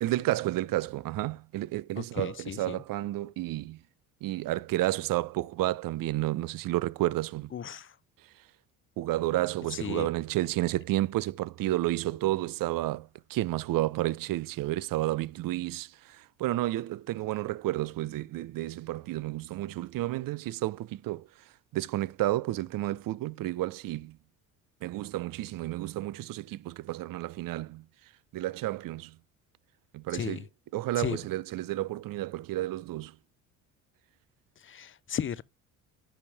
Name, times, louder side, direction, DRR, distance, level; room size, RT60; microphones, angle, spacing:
voice 1, 0.0-3.8 4.2-7.5 9.0-21.3 21.7-24.2 24.8-27.8 28.3-29.1 29.9-30.4 30.7-33.1, right 16 dB, 55° right, 0.7 m, -31 dB
voice 2, 2.0-2.8 7.5-7.9 9.8-10.1 30.1-30.4 31.0-31.2 34.6-35.4, left 8 dB, 30° left, 0.7 m, -35 dB
10.0 x 5.6 x 3.4 m
hypercardioid pair, 60°, 39 cm